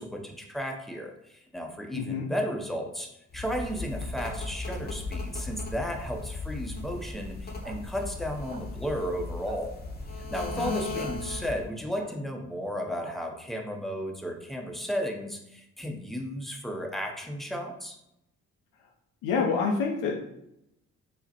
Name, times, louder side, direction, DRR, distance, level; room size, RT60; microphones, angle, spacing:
voice 1, 0.0-3.1 3.3-9.8 10.2-18.0, equal, ahead, 2 dB, 0.6 m, -34 dB
voice 2, 1.9-2.3 10.6-11.1 19.2-20.2, left 5 dB, 80° left, 0 dB, 0.5 m, -28 dB
sound 1, 3.3-11.7, left 3 dB, 30° left, 0.8 m, -37 dB
sound 2, 7.6-7.8 8.5-8.6 9.4-9.6 10.4-10.5 12.0-12.1 13.0-13.2, right 4 dB, 30° right, 0.8 m, -46 dB
4.9 x 2.1 x 2.8 m, 0.81 s
cardioid pair, 90°, 30 cm